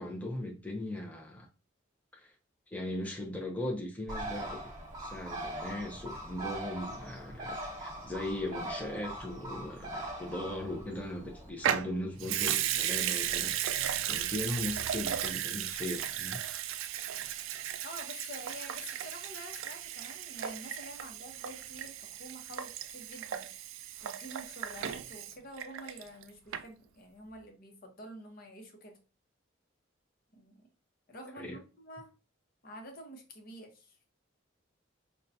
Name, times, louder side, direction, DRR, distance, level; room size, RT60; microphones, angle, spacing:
voice 1, 0.0-1.5 2.1-2.3 2.7-4.6 5.0-16.4 31.3-31.6, left 1 dB, 5° left, 0.5 m, -38 dB
Bird, 4.1-11.5, right 1 dB, 20° right, 1.3 m, -41 dB
Water tap faucet / Sink (filling or washing) / Liquid, 11.6-26.2 26.5-26.6, right 10 dB, 80° right, 0.3 m, -35 dB
voice 2, 17.8-23.5 24.0-29.0 30.3-30.6 31.1-32.1 32.6-34.0, equal, 50° left, 0.9 m, -48 dB
5.3 x 2.2 x 2.6 m
head